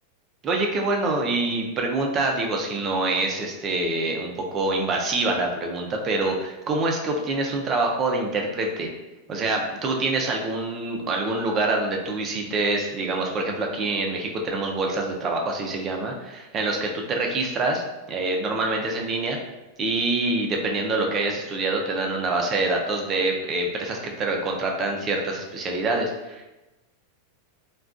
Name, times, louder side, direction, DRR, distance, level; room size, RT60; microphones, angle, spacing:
voice 1, 0.4-8.9 9.3-17.8 18.1-19.4 19.8-26.5, right 2 dB, 20° right, 1 dB, 0.4 m, -25 dB
3.5 x 2.2 x 2.5 m, 1.0 s
supercardioid pair, 170°, 0 cm